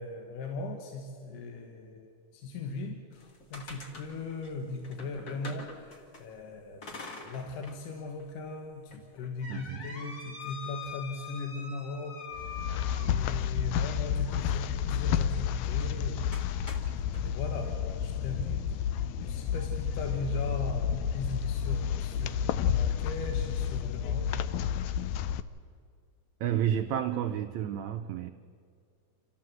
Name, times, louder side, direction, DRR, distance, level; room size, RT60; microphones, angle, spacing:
voice 1, 0.0-16.3 17.2-24.4, left 3 dB, 70° left, 3 dB, 2.8 m, -39 dB
sound 1, 3.1-6.2 6.8-7.8 8.2-8.3 8.9-13.6 15.7-15.9 16.3-17.2, left 4 dB, 30° left, 2.1 m, -44 dB
voice 2, 9.5-9.9 26.4-28.3, right 10 dB, 75° right, 5 dB, 1.7 m, -31 dB
sound 2, 12.3-25.4, left 8 dB, 85° left, 1.6 m, -30 dB
27.5 x 14.0 x 7.7 m, 2.2 s
omnidirectional pair, 4.0 m